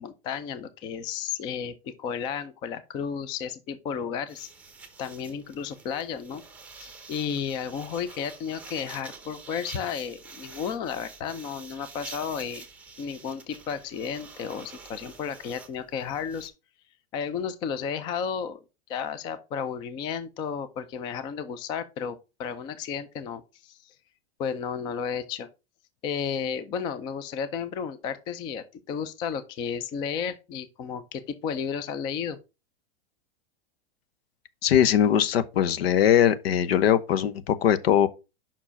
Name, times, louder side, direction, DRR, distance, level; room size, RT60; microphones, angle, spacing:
voice 1, 0.0-4.5 5.0-6.4 6.8-12.6 13.0-16.5 17.1-18.6 18.9-23.9 24.4-25.5 26.0-32.4, left 7 dB, 15° left, 0.3 m, -33 dB
sound 1, 4.3-16.5, right 4 dB, 5° right, 0.8 m, -47 dB
voice 2, 34.6-38.1, left 10 dB, 85° left, 0.9 m, -21 dB
5.6 x 4.8 x 5.6 m
supercardioid pair, 160°, 30 cm